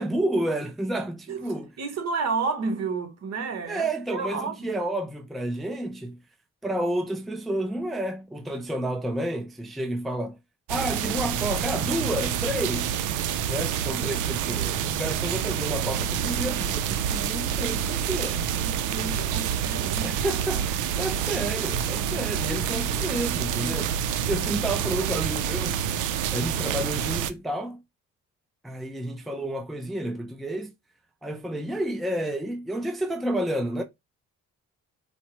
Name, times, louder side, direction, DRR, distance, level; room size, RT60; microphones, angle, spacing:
voice 1, 0.0-1.7 3.7-6.2 6.6-10.4 10.7-12.9 13.5-18.4 20.0-25.8 26.3-27.8 28.6-30.7 31.2-33.8, right 1 dB, ahead, 0.4 m, -30 dB
voice 2, 1.8-3.9 4.1-4.9 18.5-20.2, right 4 dB, 60° right, 1.0 m, -31 dB
sound 1, 10.7-27.3, right 9 dB, 80° right, 0.5 m, -27 dB
4.3 x 2.0 x 2.8 m
cardioid pair, 90°, 30 cm